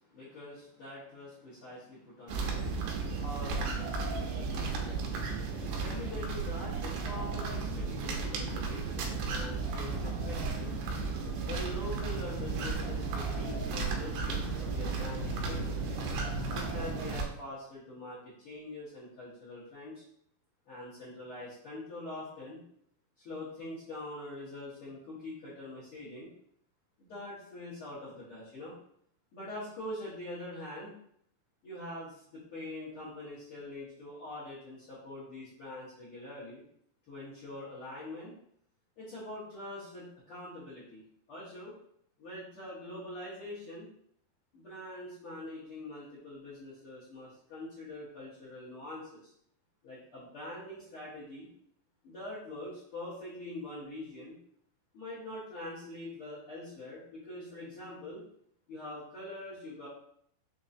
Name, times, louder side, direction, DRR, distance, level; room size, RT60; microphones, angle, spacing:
voice 1, 0.0-10.8 11.4-15.8 16.5-20.0 20.6-22.6 23.2-26.3 27.0-28.7 29.3-30.9 31.6-36.6 37.1-38.3 39.0-41.0 41.3-41.7 42.2-43.9 44.5-49.3 49.8-51.5 52.0-54.4 54.9-58.2 58.7-59.9, left 1 dB, 65° left, -11 dB, 1.4 m, -44 dB
sound 1, 2.3-17.2, right 4 dB, 80° right, 2.7 m, -34 dB
6.2 x 3.1 x 2.7 m, 0.67 s
omnidirectional pair, 4.6 m